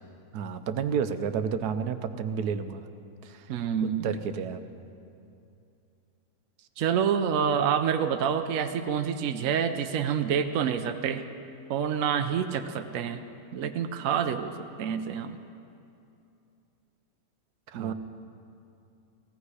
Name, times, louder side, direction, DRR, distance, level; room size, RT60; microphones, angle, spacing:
voice 1, 0.3-2.9 3.2-3.5 4.0-4.6 17.7-17.9, right 7 dB, 85° right, 9 dB, 1.3 m, -31 dB
voice 2, 3.5-4.1 6.8-11.2 11.7-13.2 13.5-15.4 17.7-17.9, right 7 dB, 65° right, 7 dB, 1.0 m, -27 dB
17.5 x 16.0 x 4.9 m, 2.6 s
omnidirectional pair, 1.6 m